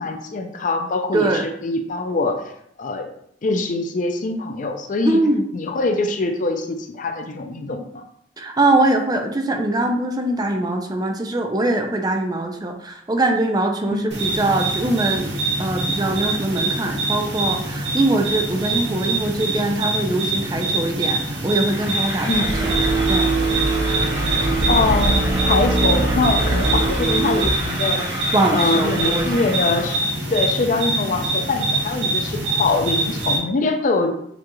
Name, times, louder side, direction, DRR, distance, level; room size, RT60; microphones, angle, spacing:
voice 1, 0.0-2.4 2.8-3.1 3.4-5.2 5.5-8.0 13.9-14.1 22.2-22.6 24.7-28.1 28.5-30.0 30.3-34.2, left 3 dB, 45° left, 5 dB, 0.5 m, -23 dB
voice 2, 1.1-1.4 5.0-5.5 8.4-22.7 23.1-23.3 28.3-29.5, right 2 dB, 20° right, 4 dB, 0.5 m, -22 dB
sound 1, 14.1-33.4, right 2 dB, 80° right, 1.2 m, -25 dB
sound 2, 21.6-30.1, right 1 dB, 45° right, 1.8 m, -31 dB
sound 3, 22.3-27.5, right 2 dB, 65° right, 0.7 m, -22 dB
6.8 x 2.4 x 3.0 m, 0.70 s
head